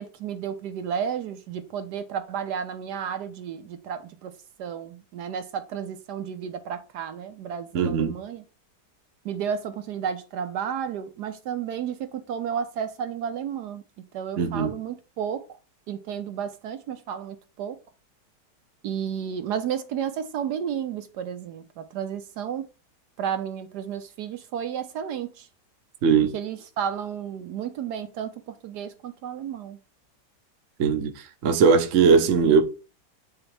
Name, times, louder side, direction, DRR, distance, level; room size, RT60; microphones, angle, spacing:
voice 1, 0.0-8.4 9.2-15.4 15.9-17.8 18.8-22.6 23.2-25.5 26.3-29.8, right 8 dB, 75° right, 1.2 m, -32 dB
voice 2, 7.7-8.1 14.4-14.7 26.0-26.3 30.8-31.1 31.4-32.6, right 5 dB, 55° right, 1.0 m, -19 dB
8.9 x 4.0 x 3.3 m
omnidirectional pair, 1.9 m